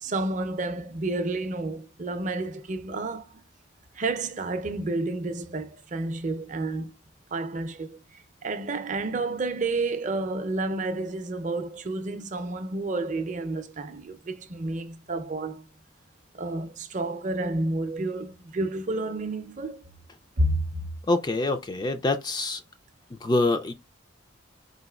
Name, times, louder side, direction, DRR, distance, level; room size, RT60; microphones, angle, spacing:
voice 1, 0.0-3.4 4.0-6.9 7.3-8.0 8.4-15.6 16.3-19.8 20.4-20.9, right 2 dB, 40° right, 0.5 m, -30 dB
voice 2, 21.1-22.6 23.2-23.7, left 2 dB, 20° left, 0.3 m, -25 dB
4.2 x 4.0 x 2.3 m
head